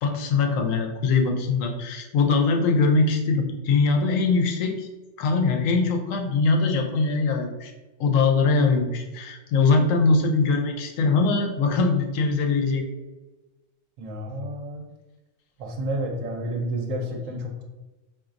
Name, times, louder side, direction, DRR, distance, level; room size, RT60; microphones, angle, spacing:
voice 1, 0.0-4.9 5.2-7.7 8.0-12.9, left 4 dB, 85° left, 3 dB, 1.0 m, -22 dB
voice 2, 14.0-14.9 15.6-17.6, right 1 dB, 80° right, 2 dB, 1.0 m, -30 dB
4.0 x 2.6 x 2.4 m, 1.1 s
omnidirectional pair, 1.3 m